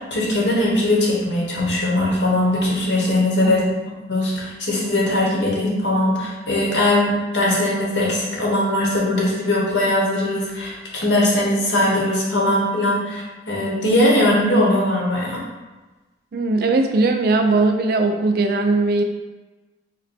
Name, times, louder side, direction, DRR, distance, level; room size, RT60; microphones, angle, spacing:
voice 1, 0.1-3.6 4.1-10.8 11.0-15.4, left 1 dB, 70° left, -3 dB, 1.1 m, -20 dB
voice 2, 3.4-3.7 16.3-19.0, right 3 dB, 55° right, 5 dB, 0.4 m, -19 dB
4.1 x 2.1 x 4.1 m, 1.2 s
head